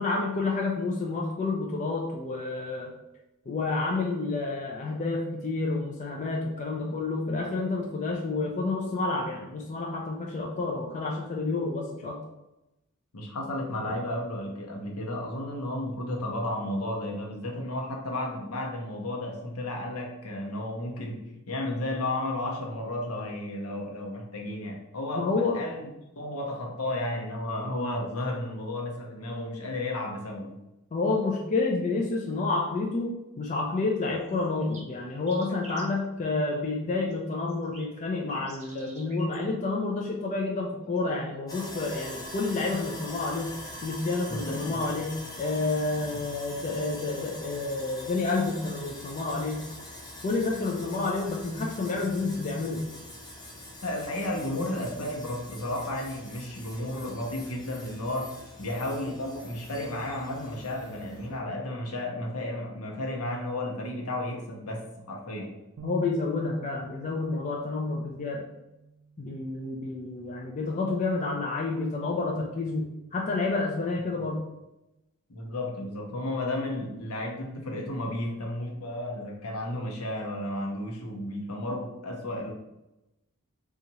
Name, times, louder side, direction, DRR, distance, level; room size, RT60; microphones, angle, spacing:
voice 1, 0.0-2.9 3.5-12.2 13.8-13.9 25.2-25.6 30.9-33.1 33.4-43.5 43.8-45.1 45.4-49.6 50.2-52.8 65.8-68.5 69.2-72.9 73.1-74.4, left 3 dB, 35° left, -1 dB, 0.4 m, -29 dB
voice 2, 13.1-25.9 26.2-30.6 44.3-44.9 53.8-58.3 58.6-65.6 75.3-82.5, left 1 dB, 70° left, 0 dB, 0.8 m, -33 dB
sound 1, 34.0-34.1 34.2-35.8 37.1-39.4 40.8-41.2, right 2 dB, 30° right, 0.9 m, -49 dB
Sawing, 41.5-61.4, left 1 dB, 15° left, 0.8 m, -44 dB
sound 2, 65.8-72.0, right 4 dB, 65° right, 0.3 m, -47 dB
2.8 x 2.4 x 4.1 m, 0.93 s
head